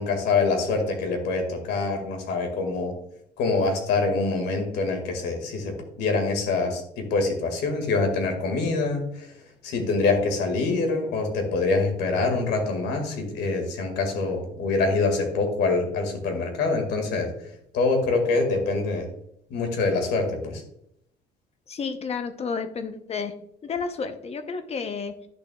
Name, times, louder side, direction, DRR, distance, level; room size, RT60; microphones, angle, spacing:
voice 1, 0.0-2.9 3.4-9.3 9.6-17.3 17.7-19.0 19.5-20.6, left 3 dB, 80° left, 4 dB, 2.1 m, -25 dB
voice 2, 21.7-23.4 23.6-25.2, left 5 dB, 40° left, 9 dB, 0.8 m, -31 dB
10.5 x 6.2 x 2.4 m, 0.72 s
cardioid pair, 110°, 17 cm